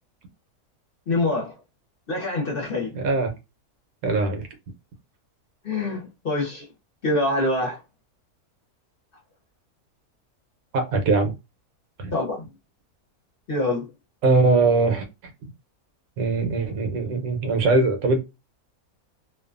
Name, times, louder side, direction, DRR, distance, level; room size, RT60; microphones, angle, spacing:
voice 1, 1.1-1.5 2.1-2.9 5.6-6.6 7.0-7.8 12.1-12.4 13.5-13.9, left 2 dB, 50° left, 0.8 m, -25 dB
voice 2, 2.9-3.3 4.0-4.5 10.7-11.3 12.0-12.1 14.2-15.0 16.2-18.2, right 3 dB, 75° right, 1.1 m, -21 dB
2.6 x 2.3 x 2.4 m
omnidirectional pair, 1.6 m